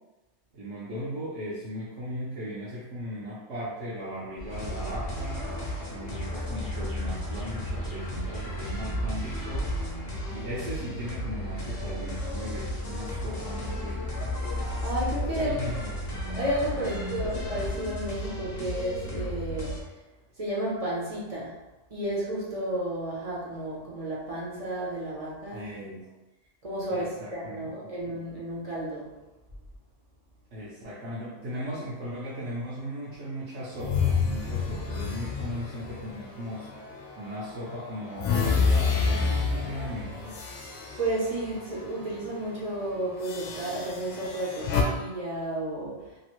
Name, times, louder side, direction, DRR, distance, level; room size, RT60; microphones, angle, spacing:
voice 1, 0.5-5.4 5.9-9.7 10.3-14.3 15.4-15.9 16.8-17.0 25.5-26.1 26.9-27.9 28.3-28.4 30.5-36.7 37.2-40.4, equal, 70° right, -9 dB, 1.0 m, -37 dB
sound 1, 4.4-17.7, equal, 30° left, 0.8 m, -40 dB
sound 2, 4.5-19.8, left 1 dB, 60° left, 0.9 m, -34 dB
voice 2, 14.8-15.6 16.3-19.9 20.4-21.5 21.9-25.7 26.6-29.1 41.0-46.2, right 1 dB, 40° right, -6 dB, 0.7 m, -32 dB
sound 3, 33.8-37.1 37.5-41.9 42.2-42.4 43.2-44.8, left 5 dB, 80° left, 0.9 m, -29 dB
2.9 x 2.5 x 2.9 m, 1.1 s
omnidirectional pair, 1.2 m